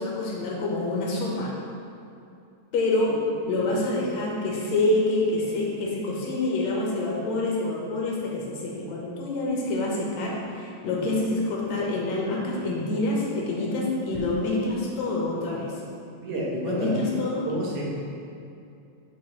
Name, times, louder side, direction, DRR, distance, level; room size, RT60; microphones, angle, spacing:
voice 1, 0.0-1.5 2.7-3.2 3.5-15.7 16.6-17.5, left 2 dB, 70° left, -3 dB, 2.1 m, -27 dB
voice 2, 16.2-17.0 17.5-17.8, right 2 dB, 80° right, -5 dB, 2.6 m, -29 dB
8.9 x 4.7 x 3.0 m, 2.6 s
omnidirectional pair, 3.4 m